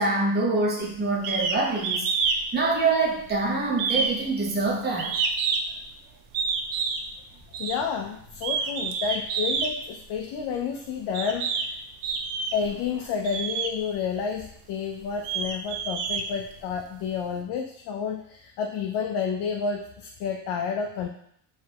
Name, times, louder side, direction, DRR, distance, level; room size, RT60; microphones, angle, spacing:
voice 1, 0.0-5.1, right 3 dB, 20° right, -2 dB, 0.8 m, -25 dB
sound 1, 1.2-1.6 1.8-2.4 2.7-3.4 3.8-5.8 6.3-7.0 7.5-7.8 8.3-9.7 10.5-10.6 11.1-11.7 12.0-12.7 13.2-13.7 14.4-14.5 15.0-16.8, right 5 dB, 65° right, 0.6 m, -28 dB
voice 2, 7.6-11.6 12.5-21.1, left 6 dB, 55° left, 3 dB, 0.5 m, -30 dB
5.0 x 3.2 x 2.8 m, 0.69 s
cardioid pair, 150°, 48 cm